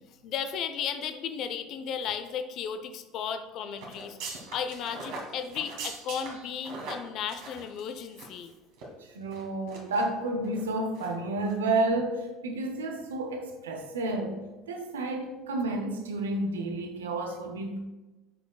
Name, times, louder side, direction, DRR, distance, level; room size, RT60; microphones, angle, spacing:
voice 1, 0.2-4.2 4.5-8.5, left 7 dB, 55° left, 9 dB, 0.5 m, -35 dB
sound 1, 3.8-8.5 8.7-8.9 9.3-10.0 10.4-10.6 10.9-11.1 11.4-11.5, right 3 dB, 70° right, 1.8 m, -41 dB
voice 2, 9.0-14.4 14.7-17.8, right 2 dB, 85° right, 4 dB, 0.7 m, -31 dB
10.5 x 5.1 x 2.3 m, 1.1 s
hypercardioid pair, 65°, 0 cm